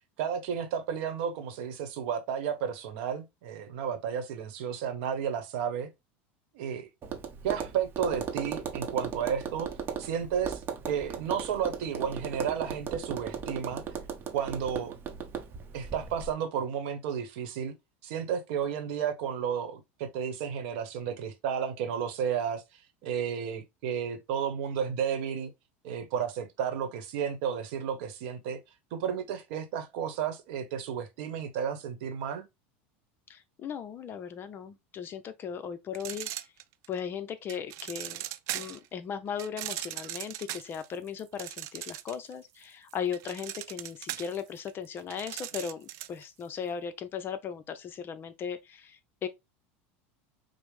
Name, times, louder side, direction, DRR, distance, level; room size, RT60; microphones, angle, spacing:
voice 1, 0.2-5.9 6.5-6.9 7.4-9.7 10.0-10.6 10.9-13.8 14.3-14.9 15.7-17.7 18.0-22.6 23.0-25.5 25.8-28.6 28.9-32.4, right 8 dB, 70° right, 0.9 m, -32 dB
Tap, 7.0-16.3, right 7 dB, 35° right, 0.7 m, -37 dB
voice 2, 33.3-36.3 36.9-38.2 38.5-49.3, left 7 dB, 35° left, 0.5 m, -37 dB
sound 1, 35.9-37.0 37.5-38.9 39.4-42.3 42.6-46.2, right 14 dB, 55° right, 0.3 m, -39 dB
5.1 x 2.0 x 3.2 m
supercardioid pair, 115°, 6 cm